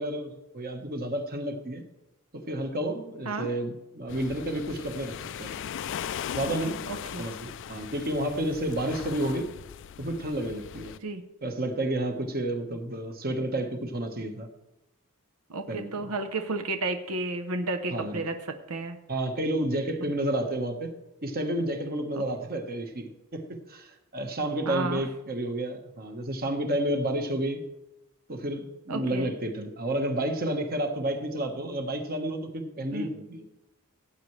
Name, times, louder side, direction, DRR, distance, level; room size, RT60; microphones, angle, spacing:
voice 1, 0.0-1.8 2.3-5.6 6.3-6.8 7.2-9.5 10.0-10.9 11.4-14.5 15.7-16.1 17.9-18.2 19.1-20.9 21.2-27.6 28.3-33.4, right 1 dB, 45° right, 5 dB, 1.4 m, -31 dB
sound 1, 4.1-11.0, left 8 dB, 60° left, 0.4 m, -38 dB
voice 2, 6.9-7.3 11.0-11.2 15.5-19.0 22.1-22.2 24.7-25.0 28.9-29.3 32.9-33.1, right 2 dB, 90° right, 7 dB, 0.9 m, -32 dB
17.0 x 8.6 x 3.3 m, 0.97 s
head